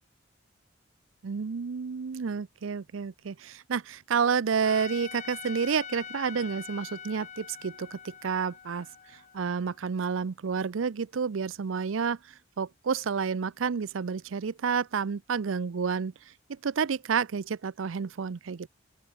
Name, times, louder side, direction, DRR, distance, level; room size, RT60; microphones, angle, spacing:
voice 1, 1.2-8.9 9.1-12.2 12.6-16.1 16.5-18.7, right 6 dB, 80° right, 0.5 m, -30 dB
Trumpet, 4.6-9.8, left 8 dB, 35° left, 1.2 m, -44 dB
open air
head